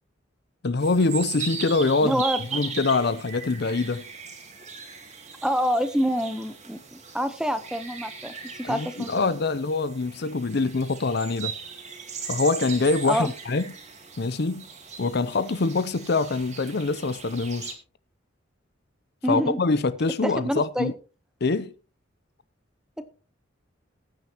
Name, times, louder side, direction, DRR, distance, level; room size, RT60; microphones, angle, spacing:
voice 1, 0.6-2.2 2.5-4.0 8.6-11.5 12.3-13.6 14.2-14.6 15.0-17.7 19.3-20.9 21.4-21.7, left 3 dB, 55° left, 0.6 m, -24 dB
sound 1, 0.8-17.7, right 6 dB, 35° right, 2.5 m, -39 dB
voice 2, 2.0-2.6 5.4-9.1 13.0-13.3 19.2-19.6 20.2-20.9 23.0-23.1, equal, 5° right, 0.9 m, -27 dB
19.0 x 9.2 x 2.9 m
head